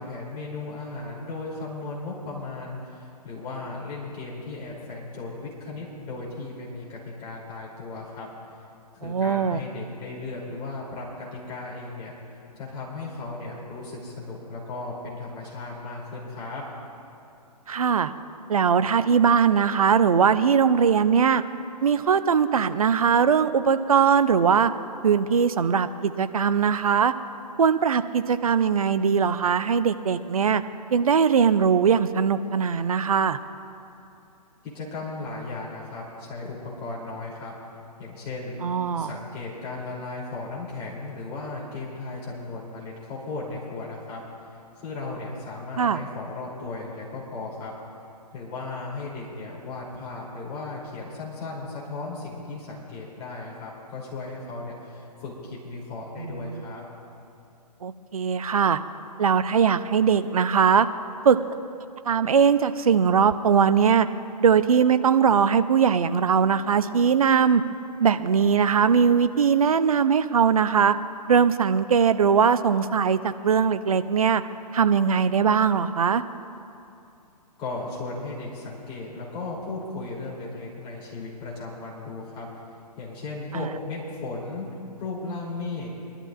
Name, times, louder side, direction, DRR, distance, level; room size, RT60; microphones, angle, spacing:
voice 1, 0.0-8.3 8.9-12.1 12.6-16.6 34.7-37.5 38.0-38.6 39.0-44.2 44.8-47.7 48.3-56.8 77.6-82.5 83.0-84.7 84.9-85.9, left 3 dB, 25° left, -5 dB, 3.2 m, -36 dB
voice 2, 9.0-9.6 17.7-18.1 18.5-21.4 21.8-24.7 25.0-27.1 27.6-30.6 30.9-33.4 38.6-39.1 45.8-46.0 56.2-56.6 57.8-58.8 59.2-60.9 61.2-61.4 62.0-64.1 64.4-67.6 68.0-70.9 71.3-74.4 74.7-76.2 83.5-83.7, right 6 dB, 60° right, 12 dB, 0.6 m, -20 dB
25.0 x 12.0 x 2.5 m, 2.7 s
figure-of-eight pair, 125°, 21 cm